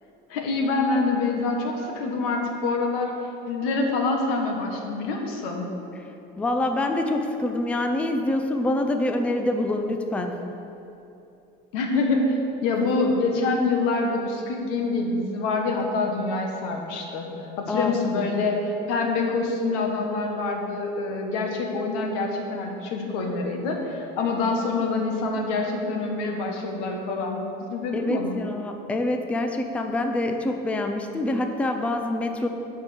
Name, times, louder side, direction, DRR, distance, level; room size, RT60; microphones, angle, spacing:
voice 1, 0.3-3.1 3.5-5.7 11.7-12.3 12.6-17.3 17.6-28.4, left 3 dB, 85° left, 2 dB, 1.6 m, -26 dB
voice 2, 6.4-10.3 12.8-12.9 17.7-18.4 27.9-32.5, left 1 dB, 5° left, 5 dB, 0.4 m, -26 dB
9.4 x 5.5 x 6.7 m, 2.9 s
cardioid pair, 160°, 19 cm